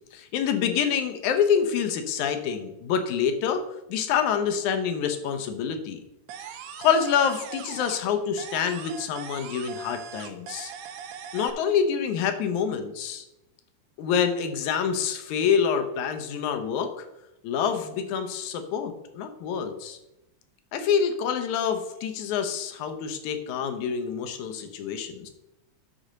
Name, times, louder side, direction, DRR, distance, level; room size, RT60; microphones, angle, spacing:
voice 1, 0.1-3.6 3.9-6.0 6.8-10.7 11.3-13.2 14.0-17.1 17.4-20.0 20.7-25.3, left 7 dB, 80° left, 7 dB, 2.3 m, -26 dB
sound 1, 6.3-8.1 8.4-11.5, right 7 dB, 75° right, 1.9 m, -40 dB
10.0 x 4.3 x 6.5 m, 0.91 s
omnidirectional pair, 3.4 m